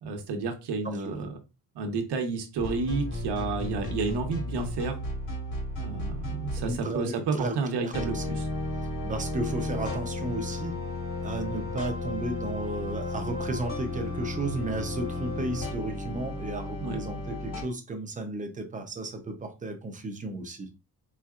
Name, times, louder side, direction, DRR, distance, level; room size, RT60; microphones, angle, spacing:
voice 1, 0.0-1.3 1.7-5.0 5.8-8.5 16.8-17.0, right 4 dB, 70° right, 1.1 m, -31 dB
sound 1, 2.6-6.8 7.9-17.6, left 2 dB, 45° left, 2.5 m, -34 dB
voice 2, 6.6-7.5 7.8-8.2 9.0-10.9 11.2-20.7, right 2 dB, 20° right, 0.7 m, -34 dB
4.3 x 4.0 x 2.4 m
cardioid pair, 170°, 41 cm